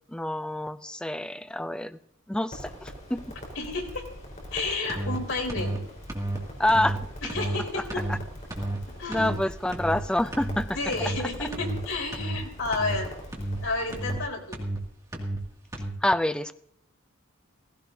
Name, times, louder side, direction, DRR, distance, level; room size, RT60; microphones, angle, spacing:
voice 1, 0.1-2.0 2.3-3.2 6.6-7.0 7.9-8.2 9.1-10.7 11.0-11.1 16.0-16.5, left 1 dB, 5° left, 11 dB, 0.4 m, -27 dB
Crackle, 2.5-14.2, equal, 40° left, 4.2 m, -42 dB
voice 2, 3.5-4.1 4.5-5.8 7.2-8.0 9.0-9.3 10.7-13.1 13.6-14.6, left 3 dB, 75° left, 1 dB, 4.2 m, -31 dB
sound 1, 4.9-5.2 5.5-5.8 6.1-6.4 6.7-7.0 7.3-7.6 7.9-8.2 8.5-8.8 9.1-9.4 9.7-10.0 10.3-10.6 10.9-11.2 11.5-11.8 12.1-12.4 12.7-13.0 13.3-13.6 13.9-14.2 14.5-14.8 15.1-15.4 15.7-15.9, right 1 dB, 15° right, 2.2 m, -31 dB
17.0 x 16.0 x 2.7 m, 0.74 s
head